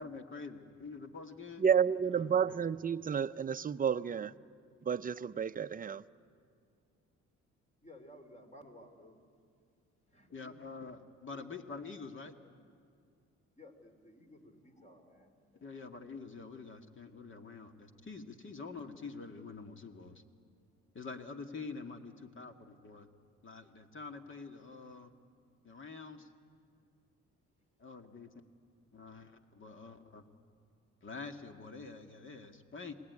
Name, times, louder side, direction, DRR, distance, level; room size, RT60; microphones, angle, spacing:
voice 1, 0.0-1.6 2.1-2.7 10.3-12.3 15.6-20.2 20.9-23.1 23.4-25.1 25.6-26.3 27.8-28.3 28.9-30.2 31.0-32.9, left 4 dB, 40° left, 6 dB, 2.0 m, -46 dB
voice 2, 1.6-4.3 4.9-6.0, right 7 dB, 30° right, 12 dB, 0.6 m, -31 dB
voice 3, 7.8-9.2 10.1-10.5 11.3-11.4 13.5-15.7, left 1 dB, 25° left, 6 dB, 3.3 m, -56 dB
30.0 x 20.5 x 9.6 m, 2.3 s
cardioid pair, 90°, 30 cm